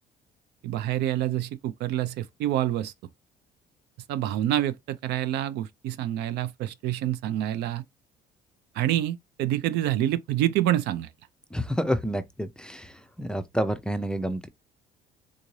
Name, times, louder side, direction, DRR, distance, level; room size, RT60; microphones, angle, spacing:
voice 1, 0.6-2.9 4.1-7.8 8.8-11.1, right 13 dB, 80° right, 0.4 m, -27 dB
voice 2, 11.5-12.9 13.2-14.5, equal, 5° left, 0.4 m, -29 dB
3.7 x 2.6 x 3.1 m
cardioid pair, 110°, 17 cm